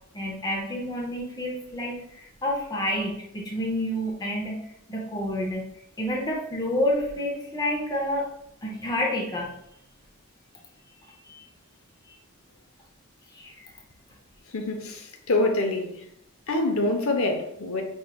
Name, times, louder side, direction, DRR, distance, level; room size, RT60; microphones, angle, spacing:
voice 1, 0.1-4.6 4.9-5.7 6.0-8.3 8.6-9.5 11.1-11.4 13.3-13.7, left 1 dB, 20° left, 0.6 m, -29 dB
voice 2, 14.5-15.9 16.5-17.8, left 2 dB, 70° left, 0.7 m, -25 dB
5.2 x 3.1 x 2.2 m
head